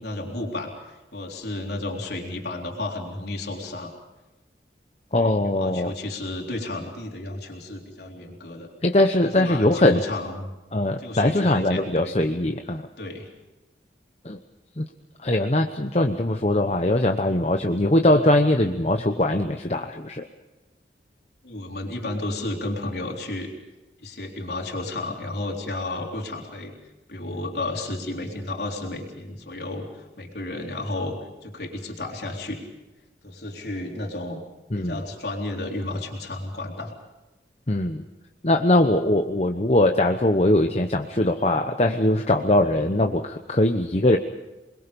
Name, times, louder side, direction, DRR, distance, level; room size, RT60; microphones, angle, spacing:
voice 1, 0.0-3.9 5.1-8.7 9.2-10.5 11.0-12.2 13.0-13.3 21.4-23.5 24.0-26.7 27.1-31.2 31.4-32.6 33.2-34.4 34.7-36.9, left 2 dB, 70° left, 0 dB, 3.9 m, -32 dB
voice 2, 5.1-5.9 8.8-10.0 10.7-12.8 14.2-14.4 14.8-14.9 15.2-20.2 34.7-35.0 37.7-38.0 38.4-44.2, left 1 dB, 35° left, 5 dB, 1.0 m, -21 dB
28.5 x 22.0 x 5.3 m, 1.1 s
head